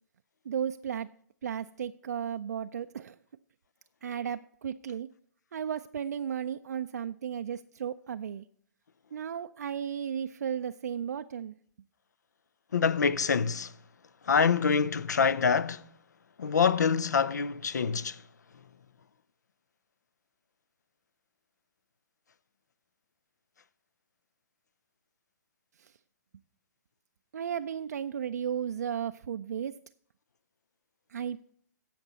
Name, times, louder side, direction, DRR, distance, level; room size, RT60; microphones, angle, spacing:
voice 1, 0.5-1.1 1.4-3.2 4.0-5.1 5.5-8.5 9.1-11.6 25.8-25.9 27.3-29.7 31.1-31.4, right 8 dB, 70° right, 0.4 m, -34 dB
voice 2, 12.7-13.7 14.2-15.9 16.4-18.2, left 6 dB, 75° left, 0.5 m, -26 dB
16.0 x 6.0 x 4.0 m
figure-of-eight pair, 125°, 9 cm